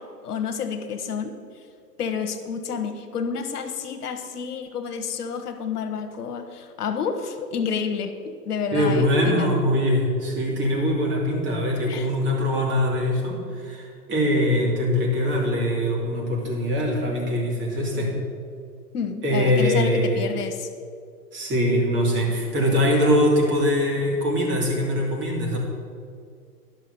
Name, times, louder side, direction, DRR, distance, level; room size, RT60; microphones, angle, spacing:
voice 1, 0.0-1.3 2.0-9.5 11.9-12.1 18.9-20.7, left 6 dB, 75° left, 6 dB, 1.2 m, -30 dB
voice 2, 8.7-18.1 19.2-20.3 21.3-25.6, equal, 25° right, -2 dB, 2.5 m, -22 dB
11.0 x 6.1 x 6.8 m, 2.2 s
hypercardioid pair, 130°, 47 cm